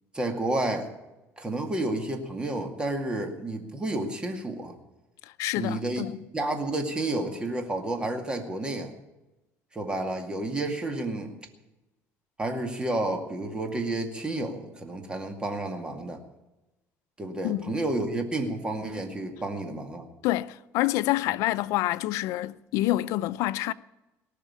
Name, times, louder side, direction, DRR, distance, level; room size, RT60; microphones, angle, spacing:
voice 1, 0.1-0.9 1.4-4.8 5.6-6.1 6.3-8.9 9.7-11.3 12.4-16.2 17.2-20.1 21.3-21.4, right 2 dB, 15° right, 2.2 m, -30 dB
voice 2, 5.4-6.2 17.4-17.8 20.2-23.7, left 16 dB, 80° left, 0.5 m, -27 dB
18.5 x 6.6 x 9.9 m
cardioid pair, 120°, 5 cm